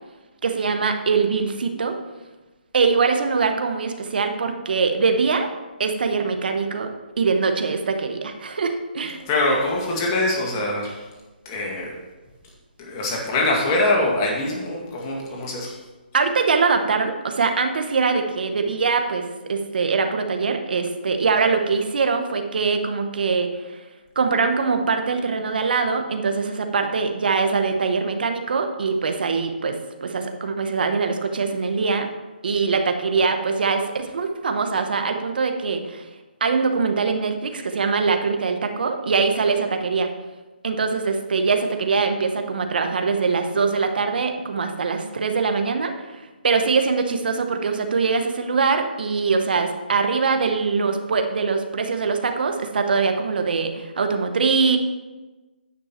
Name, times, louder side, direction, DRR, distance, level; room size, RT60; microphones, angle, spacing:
voice 1, 0.4-2.0 2.7-5.5 5.8-6.9 7.2-9.2 16.1-23.8 24.1-32.1 32.4-36.1 36.4-40.1 40.6-54.8, right 4 dB, 60° right, 6 dB, 1.2 m, -23 dB
voice 2, 9.3-11.1 11.5-11.9 12.8-15.8, left 2 dB, 25° left, -2 dB, 1.9 m, -23 dB
9.7 x 6.3 x 4.4 m, 1.2 s
hypercardioid pair, 160°, 6 cm